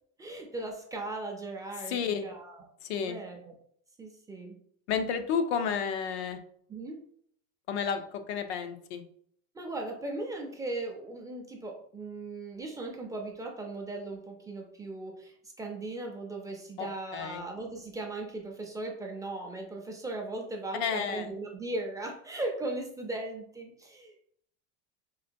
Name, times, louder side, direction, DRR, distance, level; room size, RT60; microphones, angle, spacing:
voice 1, 0.2-2.7 3.0-3.5 4.0-4.6 6.7-7.0 9.5-24.3, right 2 dB, 10° right, 1 dB, 0.3 m, -38 dB
voice 2, 1.9-2.3 2.8-3.2 4.9-6.4 7.7-9.0 16.8-16.9 17.1-17.4 20.8-21.3, left 7 dB, 90° left, 7 dB, 0.6 m, -31 dB
3.8 x 2.2 x 2.5 m, 0.63 s
supercardioid pair, 130°, 32 cm